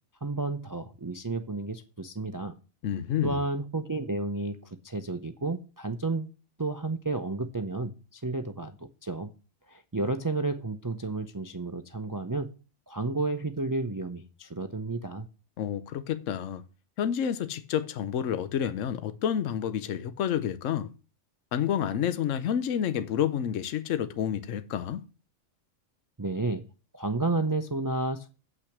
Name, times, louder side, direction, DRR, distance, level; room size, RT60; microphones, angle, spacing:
voice 1, 0.2-2.6 3.2-6.3 6.6-9.3 9.7-12.5 12.9-15.3 26.2-26.6 26.9-28.3, right 2 dB, 25° right, 0.4 m, -31 dB
voice 2, 2.8-3.4 15.6-16.6 17.0-20.9 21.5-25.0, left 9 dB, 80° left, 1.1 m, -29 dB
8.2 x 5.9 x 5.9 m
omnidirectional pair, 1.3 m